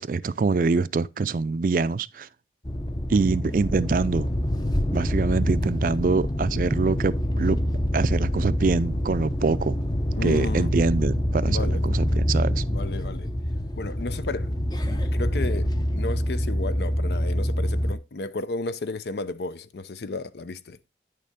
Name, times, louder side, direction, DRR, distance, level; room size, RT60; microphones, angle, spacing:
voice 1, 0.0-2.3 3.1-4.3 4.9-7.6 7.9-9.8 10.2-12.6, right 4 dB, 50° right, 0.4 m, -24 dB
sound 1, 2.6-17.9, equal, 25° left, 0.6 m, -26 dB
voice 2, 10.2-10.7 11.4-11.8 12.5-13.3 13.8-14.5 14.8-20.8, left 3 dB, 70° left, 0.6 m, -33 dB
9.4 x 6.6 x 3.6 m
head